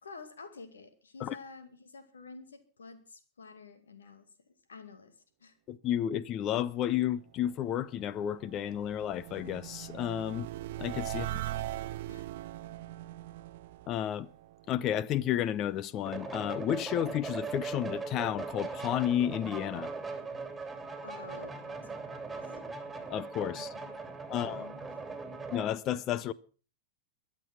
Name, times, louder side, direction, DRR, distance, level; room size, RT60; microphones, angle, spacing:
voice 1, 0.0-4.2 4.7-5.1 5.4-5.6 11.1-12.3 20.6-20.7 21.0-22.5 23.5-24.0 24.3-24.8, left 4 dB, 70° left, 2.2 m, -50 dB
voice 2, 5.7-10.5 10.8-11.3 13.9-14.3 14.7-19.9 23.1-23.7 24.3-24.7 25.5-26.3, left 11 dB, 35° left, 0.6 m, -32 dB
sound 1, 7.9-15.0, right 14 dB, 55° right, 0.6 m, -40 dB
sound 2, 16.0-25.7, right 4 dB, 10° right, 3.1 m, -40 dB
22.5 x 7.5 x 5.9 m
figure-of-eight pair, 90°, 0 cm